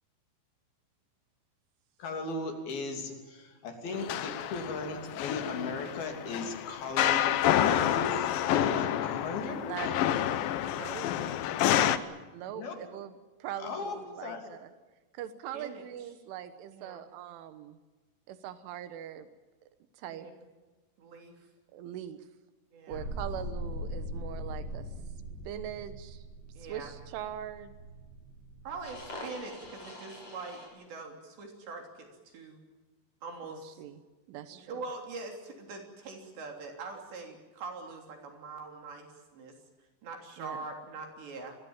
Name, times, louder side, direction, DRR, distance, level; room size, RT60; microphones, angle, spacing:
voice 1, 2.0-10.4 12.5-12.7 13.6-14.4, left 3 dB, 55° left, 4 dB, 4.5 m, -37 dB
sound 1, 3.9-12.0, left 11 dB, 80° left, 2.0 m, -29 dB
voice 2, 9.5-11.1 12.3-13.1 13.4-14.7 15.1-17.8 18.3-19.3 19.9-20.3 21.7-22.3 22.9-24.9 25.5-26.2 26.7-27.8 33.4-34.0 34.3-34.8 40.4-40.7, right 10 dB, 85° right, 11 dB, 3.7 m, -42 dB
voice 3, 15.5-15.8 16.7-17.0 20.1-20.3 21.0-21.3 22.7-23.1 26.6-26.9 28.7-32.1 32.3-32.6 33.2-33.8 34.5-39.5 40.0-41.6, right 3 dB, 65° right, 3 dB, 5.4 m, -43 dB
sound 2, 22.9-30.7, equal, 35° left, 7.6 m, -41 dB
27.5 x 21.5 x 7.3 m, 1.2 s
omnidirectional pair, 5.4 m